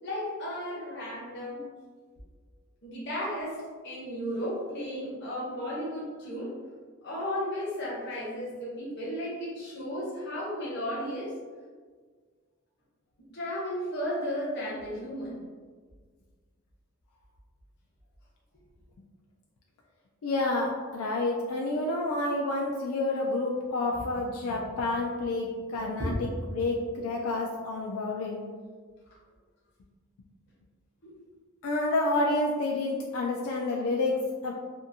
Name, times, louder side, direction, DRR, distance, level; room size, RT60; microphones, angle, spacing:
voice 1, 0.0-1.6 2.8-6.5 7.0-11.3 13.3-15.4 26.0-26.2 31.0-31.1, equal, 50° left, -7 dB, 0.7 m, -34 dB
voice 2, 20.2-28.4 31.6-34.5, left 2 dB, 80° left, -1 dB, 0.3 m, -29 dB
2.6 x 2.5 x 2.6 m, 1.5 s
head